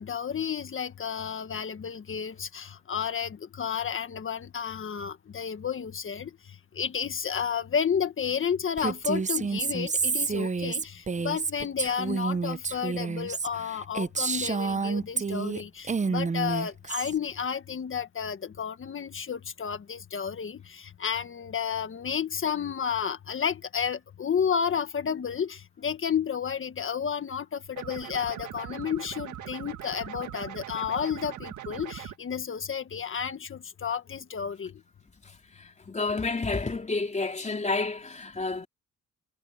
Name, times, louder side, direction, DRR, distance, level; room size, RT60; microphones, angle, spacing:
voice 1, 0.0-6.3 6.7-34.7, left 7 dB, 40° left, 1.6 m, -31 dB
Female speech woman speaking, 8.8-15.6 15.9-17.2, right 5 dB, 25° right, 0.8 m, -29 dB
sound 1, 27.8-32.2, right 12 dB, 75° right, 2.0 m, -41 dB
voice 2, 35.6-38.7, left 3 dB, 25° left, 3.3 m, -30 dB
cardioid pair, 90°, 30 cm